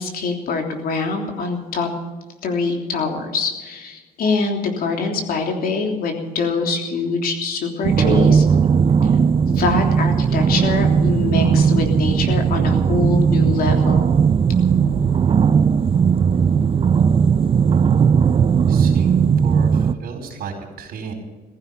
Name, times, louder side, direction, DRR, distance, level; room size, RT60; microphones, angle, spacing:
voice 1, 0.0-1.9 2.4-8.4 9.0-9.1 9.5-14.1, left 4 dB, 60° left, 3 dB, 3.3 m, -24 dB
sound 1, 7.8-19.9, right 6 dB, 30° right, 0.6 m, -17 dB
voice 2, 18.7-21.1, right 5 dB, 65° right, 3 dB, 4.8 m, -34 dB
16.0 x 15.0 x 5.6 m, 1.3 s
cardioid pair, 110°, 17 cm